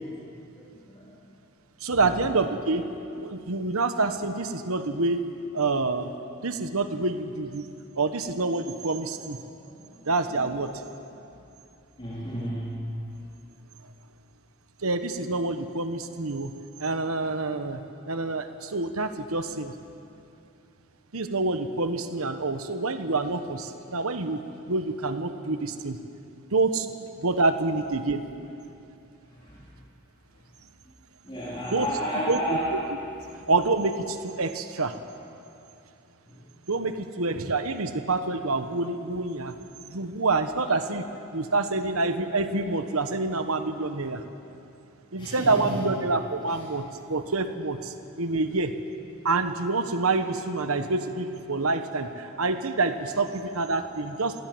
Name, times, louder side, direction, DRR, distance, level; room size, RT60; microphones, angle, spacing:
voice 1, 0.5-1.3 1.9-2.2 3.4-3.7 9.6-10.5 11.3-11.4 12.0-12.9 29.2-29.7 30.3-30.5 31.2-32.8 36.3-36.4 39.5-39.6 45.1-45.9 46.5-46.6, equal, 25° left, -8 dB, 4.2 m, -34 dB
voice 2, 1.8-2.9 3.1-5.3 5.5-6.1 6.4-7.7 8.0-9.4 10.1-10.7 14.8-16.5 16.8-17.8 18.1-19.7 21.1-26.0 26.5-26.9 27.2-28.2 31.7-31.9 32.3-32.4 33.5-34.9 36.7-39.5 39.9-41.1 41.3-44.2 45.1-48.7 49.2-54.4, right 3 dB, 85° right, 8 dB, 1.2 m, -27 dB
26.5 x 17.5 x 7.9 m, 2.7 s
head